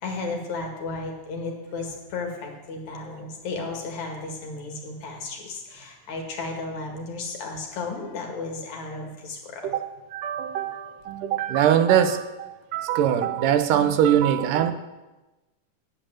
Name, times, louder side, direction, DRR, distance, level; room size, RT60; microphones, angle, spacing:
voice 1, 0.0-9.7, left 3 dB, 65° left, 2 dB, 3.1 m, -34 dB
voice 2, 10.1-14.7, right 10 dB, 90° right, 9 dB, 2.4 m, -22 dB
8.8 x 8.7 x 8.9 m, 1.1 s
omnidirectional pair, 3.7 m